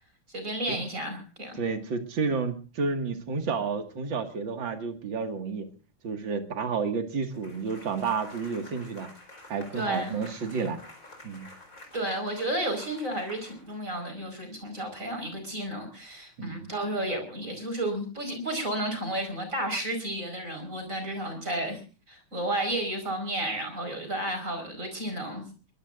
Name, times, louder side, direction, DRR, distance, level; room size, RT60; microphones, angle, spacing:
voice 1, 0.3-1.6 9.7-10.2 11.9-21.8 22.1-25.5, right 1 dB, 35° right, 6 dB, 5.4 m, -32 dB
voice 2, 1.6-5.7 6.0-9.1 9.5-10.8 11.2-11.5 16.4-16.7, right 5 dB, 65° right, 6 dB, 2.7 m, -31 dB
sound 1, 7.3-14.1, left 1 dB, 40° left, 4.8 m, -49 dB
23.5 x 22.5 x 2.6 m, 0.37 s
omnidirectional pair, 2.3 m